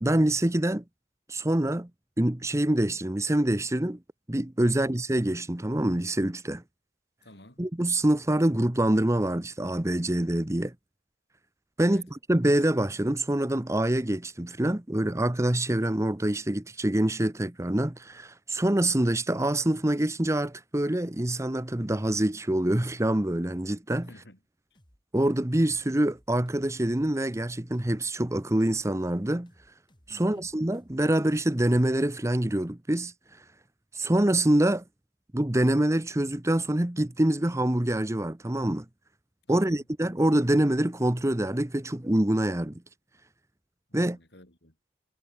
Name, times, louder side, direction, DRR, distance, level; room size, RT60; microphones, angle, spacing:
voice 1, 0.0-0.8 1.3-1.9 2.2-4.0 4.3-6.6 7.6-10.7 11.8-24.1 25.1-29.5 30.1-33.1 33.9-34.8 35.3-38.8 39.5-42.8 43.9-44.2, right 1 dB, 15° right, 0.9 m, -25 dB
voice 2, 4.6-4.9 7.2-7.6 11.8-12.1 24.1-24.4 24.7-24.8 30.1-30.5 39.5-39.9 43.9-44.8, left 1 dB, 65° left, 7.8 m, -53 dB
sound 1, 24.7-31.5, equal, 25° left, 6.0 m, -62 dB
head